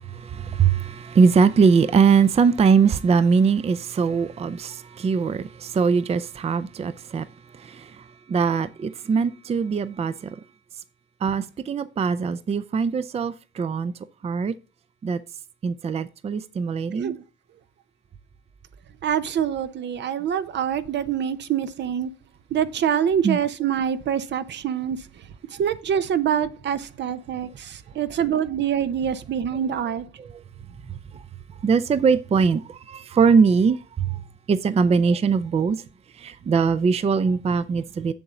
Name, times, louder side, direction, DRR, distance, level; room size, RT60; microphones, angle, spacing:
voice 1, 0.1-7.3 7.5-10.3 11.2-13.9 14.2-14.5 15.0-15.2 15.6-17.2 23.2-23.4 30.2-30.4 31.6-34.2 34.5-35.8 36.2-38.1, right 5 dB, 30° right, 0.5 m, -21 dB
voice 2, 16.9-17.2 19.0-22.1 22.5-25.0 25.6-30.0, right 8 dB, 65° right, 0.8 m, -25 dB
7.1 x 7.0 x 3.8 m
cardioid pair, 120°, 20 cm